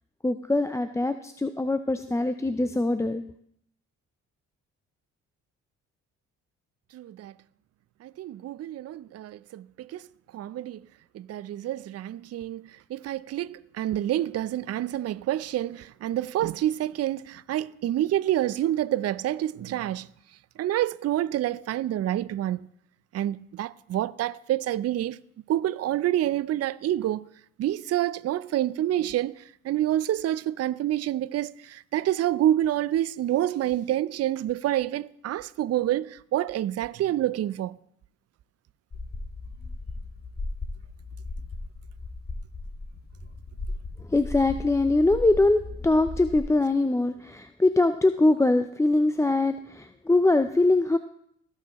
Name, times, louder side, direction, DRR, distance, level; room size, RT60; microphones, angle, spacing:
voice 1, 0.2-3.2 44.1-51.0, left 2 dB, 10° left, 0.4 m, -23 dB
voice 2, 6.9-7.3 8.0-10.1 10.3-10.8 11.1-20.1 20.6-22.7 23.1-25.2 25.5-27.3 27.6-37.8, right 13 dB, 45° right, 0.5 m, -28 dB
sound 1, 38.9-46.4, left 2 dB, 30° left, 1.5 m, -37 dB
16.0 x 5.8 x 3.0 m
supercardioid pair, 55°, 35 cm